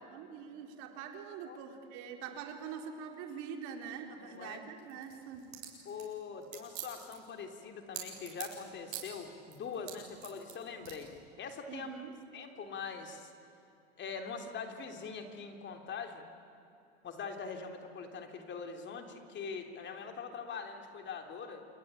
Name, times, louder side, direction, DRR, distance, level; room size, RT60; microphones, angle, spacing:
voice 1, 0.0-5.5 11.7-12.1, right 7 dB, 60° right, 4 dB, 3.9 m, -44 dB
voice 2, 4.2-4.6 5.9-11.1 11.4-11.9 12.3-13.3 14.0-16.2 17.0-21.7, left 5 dB, 35° left, 5 dB, 3.4 m, -43 dB
sound 1, 4.8-8.6 8.9-9.2 9.5-10.5 10.9-11.0, right 14 dB, 75° right, 7.8 m, -44 dB
27.0 x 22.5 x 9.1 m, 2.7 s
supercardioid pair, 105°, 31 cm